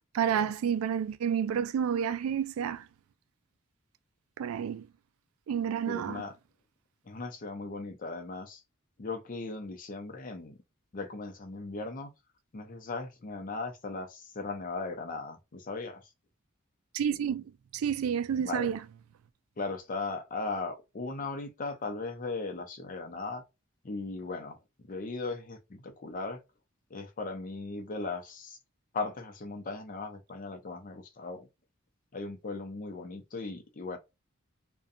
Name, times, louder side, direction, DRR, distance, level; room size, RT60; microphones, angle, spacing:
voice 1, 0.1-2.8 4.4-4.8 5.5-6.2 16.9-17.4 17.7-18.8, right 8 dB, 85° right, 0.3 m, -29 dB
voice 2, 5.9-6.4 7.1-8.6 9.0-10.5 10.9-12.1 12.5-16.0 18.4-18.7 19.6-23.4 23.8-24.6 24.9-26.4 26.9-28.6 28.9-31.5 32.1-34.0, left 3 dB, 40° left, 0.6 m, -37 dB
2.5 x 2.2 x 2.6 m
head